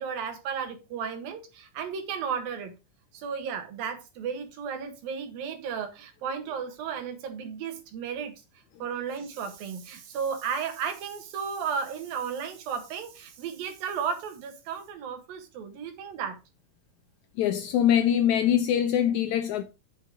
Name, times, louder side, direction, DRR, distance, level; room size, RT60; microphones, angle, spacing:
voice 1, 0.0-2.7 3.1-8.3 8.8-16.4, right 6 dB, 90° right, 3.4 m, -34 dB
voice 2, 17.4-19.6, left 10 dB, 80° left, 1.7 m, -23 dB
8.5 x 5.4 x 4.9 m
omnidirectional pair, 4.0 m